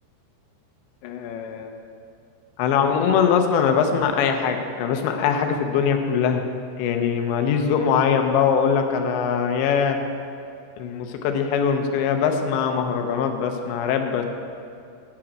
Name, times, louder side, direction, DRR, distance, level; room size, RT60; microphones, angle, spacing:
voice 1, 1.0-1.8 2.6-6.4 6.8-10.0 10.8-14.3, left 7 dB, 75° left, 5 dB, 3.0 m, -22 dB
8.8 x 7.6 x 8.8 m, 2.4 s
omnidirectional pair, 5.5 m